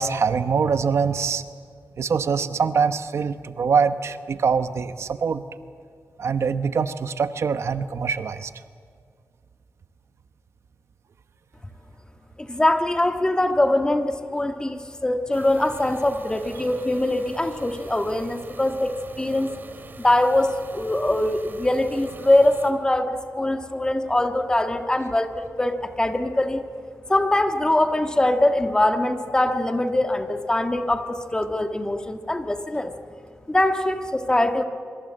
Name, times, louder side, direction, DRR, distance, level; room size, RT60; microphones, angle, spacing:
voice 1, 0.0-1.4 2.0-5.4 6.2-8.5, right 5 dB, 70° right, 10 dB, 1.0 m, -23 dB
voice 2, 12.4-19.5 20.0-26.6 27.1-32.9 33.5-34.6, left 1 dB, 15° left, 6 dB, 1.6 m, -22 dB
sound 1, 15.3-22.7, right 3 dB, 45° right, 2.3 m, -43 dB
25.0 x 24.5 x 7.7 m, 2.2 s
wide cardioid pair, 105°, 5 cm